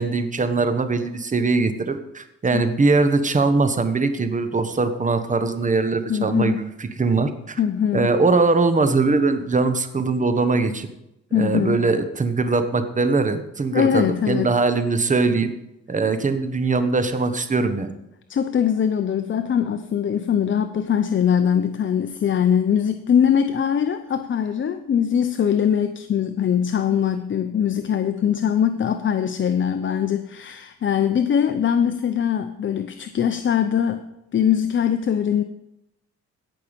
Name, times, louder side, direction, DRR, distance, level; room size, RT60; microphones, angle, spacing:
voice 1, 0.0-7.6 7.9-10.9 11.3-15.5 15.9-17.9, right 3 dB, 25° right, 9 dB, 1.2 m, -21 dB
voice 2, 6.1-6.6 7.6-8.1 11.3-11.8 13.7-14.5 18.3-34.0 34.3-35.4, left 8 dB, 40° left, 9 dB, 0.7 m, -22 dB
17.0 x 5.8 x 5.3 m, 0.88 s
cardioid pair, 90°, 30 cm